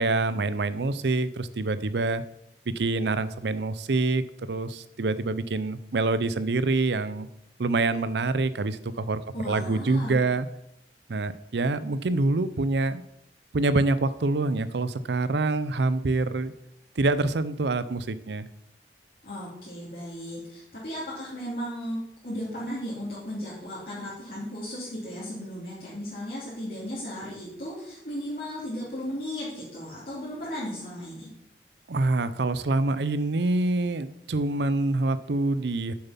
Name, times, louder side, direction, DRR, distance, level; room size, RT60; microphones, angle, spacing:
voice 1, 0.0-2.2 2.7-7.3 7.6-10.5 11.1-13.0 13.5-16.5 17.0-18.5 31.9-35.9, right 2 dB, 80° right, 15 dB, 0.6 m, -26 dB
voice 2, 9.3-10.2 19.2-22.0 22.2-31.3, equal, 55° left, -9 dB, 2.9 m, -35 dB
7.8 x 7.0 x 5.7 m, 0.81 s
head